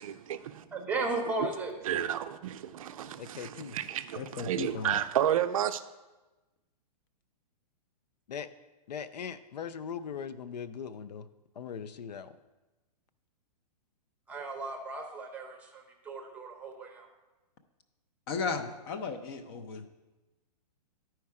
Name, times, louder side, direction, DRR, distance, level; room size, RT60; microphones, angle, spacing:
voice 1, 0.0-0.7 1.8-5.8, right 10 dB, 55° right, 11 dB, 0.4 m, -31 dB
voice 2, 0.7-1.7 14.3-17.1, right 3 dB, 5° right, 2 dB, 0.9 m, -35 dB
voice 3, 3.2-3.8 8.3-8.5 8.9-11.2 11.6-12.3 18.6-18.7, left 7 dB, 85° left, 13 dB, 0.5 m, -40 dB
voice 4, 4.2-5.0 18.3-19.9, left 5 dB, 35° left, 8 dB, 0.6 m, -35 dB
10.5 x 4.6 x 4.7 m, 1.1 s
hypercardioid pair, 150°, 21 cm